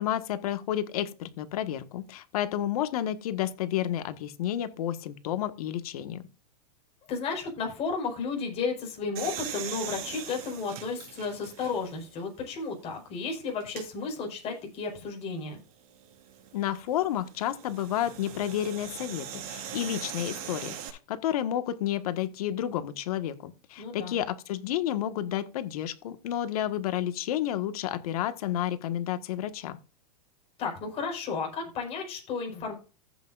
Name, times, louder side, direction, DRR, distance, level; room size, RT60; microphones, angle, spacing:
voice 1, 0.0-6.2 16.5-20.7 21.1-29.8, left 11 dB, 65° left, 1.6 m, -31 dB
voice 2, 7.1-15.6 23.8-24.2 30.6-32.7, left 4 dB, 30° left, 5.0 m, -33 dB
sound 1, 9.1-12.1 12.6-12.7 13.6-13.9 16.0-20.9, right 9 dB, 60° right, 4.5 m, -40 dB
15.5 x 8.4 x 2.5 m
supercardioid pair, 145°, 20 cm